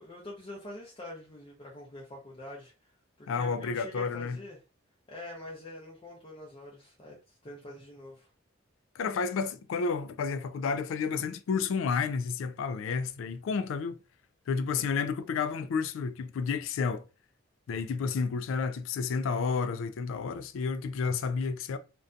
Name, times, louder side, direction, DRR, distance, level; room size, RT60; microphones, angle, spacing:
voice 1, 0.0-2.9 3.2-4.6 5.1-8.3, left 1 dB, 25° left, 0.5 m, -45 dB
voice 2, 3.3-4.4 8.9-14.0 14.5-17.0 17.7-21.8, left 5 dB, 75° left, 0.3 m, -31 dB
2.5 x 2.2 x 2.5 m
head